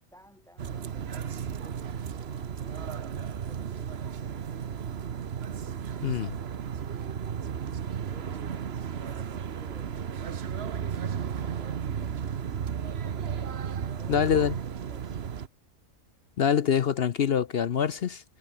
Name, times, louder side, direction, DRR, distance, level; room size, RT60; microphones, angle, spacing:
voice 1, 0.1-3.2 3.4-5.0 6.3-7.1 8.1-10.1 11.2-12.9 13.8-15.2, equal, ahead, 6.6 m, -57 dB
sound 1, 0.6-15.5, right 7 dB, 50° right, 1.2 m, -34 dB
voice 2, 6.0-6.3 14.1-14.5 16.4-18.2, left 8 dB, 55° left, 0.8 m, -25 dB
omnidirectional pair, 1.4 m